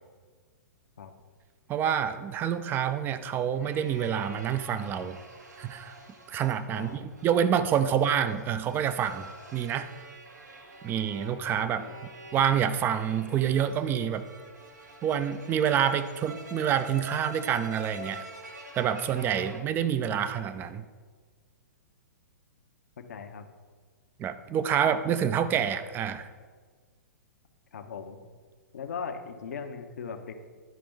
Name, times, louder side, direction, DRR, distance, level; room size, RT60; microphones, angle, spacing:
voice 1, 1.7-5.2 5.6-6.0 6.3-9.9 10.8-11.9 12.3-14.3 15.0-18.2 18.8-20.8 24.2-26.3, right 9 dB, 20° right, 12 dB, 0.5 m, -27 dB
sound 1, 2.5-19.6, right 1 dB, 75° right, 1.2 m, -47 dB
voice 2, 6.7-7.1 7.9-8.0 11.8-11.9 23.0-23.5 27.7-28.2 28.7-30.5, left 6 dB, 65° left, 6 dB, 0.8 m, -39 dB
11.5 x 5.1 x 3.5 m, 1.5 s
figure-of-eight pair, 110°, 9 cm